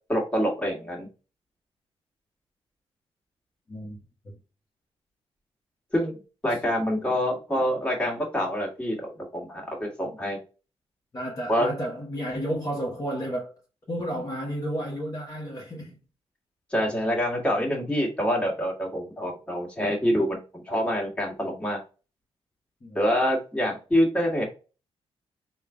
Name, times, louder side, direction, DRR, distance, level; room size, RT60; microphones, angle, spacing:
voice 1, 0.1-1.1 5.9-6.1 6.4-10.4 11.5-11.7 16.7-21.8 22.9-24.5, equal, 10° left, 1.6 m, -26 dB
voice 2, 3.7-4.0 4.2-4.4 6.5-6.6 11.1-13.5 13.9-16.0 21.4-21.7 22.8-23.0, equal, 35° left, 1.2 m, -32 dB
3.7 x 2.5 x 3.4 m
cardioid pair, 100°, 11 cm